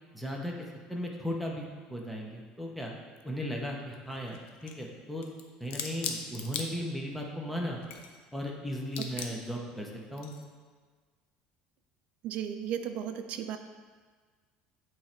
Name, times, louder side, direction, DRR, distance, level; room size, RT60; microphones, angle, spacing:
voice 1, 0.1-0.6 0.9-2.9 3.2-5.3 5.6-7.8 8.3-10.3, equal, ahead, -1 dB, 0.7 m, -36 dB
sound 1, 3.2-3.3 4.0-4.9 5.2-7.2 7.7-8.5 8.9-9.6 10.1-10.5, left 6 dB, 65° left, 0.6 m, -39 dB
voice 2, 12.2-13.6, right 9 dB, 50° right, 7 dB, 0.5 m, -35 dB
8.3 x 3.2 x 4.4 m, 1.5 s
cardioid pair, 155°, 3 cm